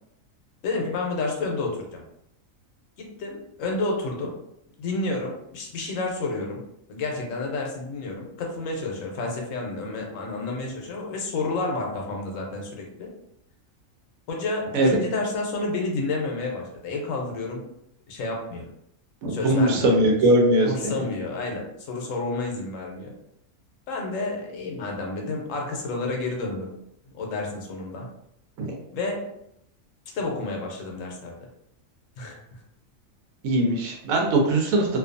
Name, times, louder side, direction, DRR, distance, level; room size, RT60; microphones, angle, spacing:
voice 1, 0.6-2.0 3.0-4.4 4.8-6.6 6.9-13.1 14.3-17.6 18.1-18.7 19.3-20.0 20.6-23.1 23.9-26.7 27.1-28.1 28.9-29.4 30.1-31.4 32.2-32.6, left 3 dB, 75° left, 0 dB, 1.0 m, -30 dB
voice 2, 19.2-21.0 28.6-28.7 33.4-35.0, right 1 dB, 85° right, 0 dB, 1.0 m, -21 dB
2.5 x 2.3 x 2.5 m, 0.76 s
omnidirectional pair, 1.4 m